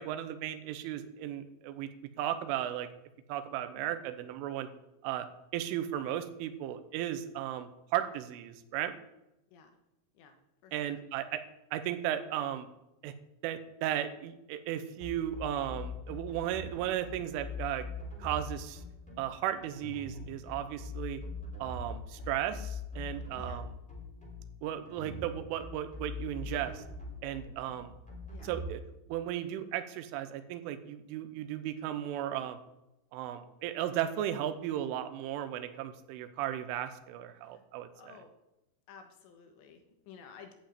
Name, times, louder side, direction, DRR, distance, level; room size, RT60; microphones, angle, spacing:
voice 1, 0.0-1.9 2.2-2.9 3.3-4.7 5.0-5.3 5.5-9.0 10.7-11.4 11.7-12.7 13.0-13.1 13.4-17.9 18.2-18.8 19.2-21.2 21.6-23.7 24.6-26.8 27.2-27.9 28.4-28.8 29.1-32.6 33.1-38.1, right 11 dB, 80° right, 9 dB, 3.3 m, -35 dB
voice 2, 10.6-11.0 23.3-23.6 28.3-28.5 37.5-37.6 37.9-38.3 38.9-40.5, left 6 dB, 70° left, 5 dB, 3.1 m, -53 dB
sound 1, 15.0-28.7, left 2 dB, ahead, 2.3 m, -42 dB
11.5 x 5.4 x 8.8 m, 0.91 s
omnidirectional pair, 5.8 m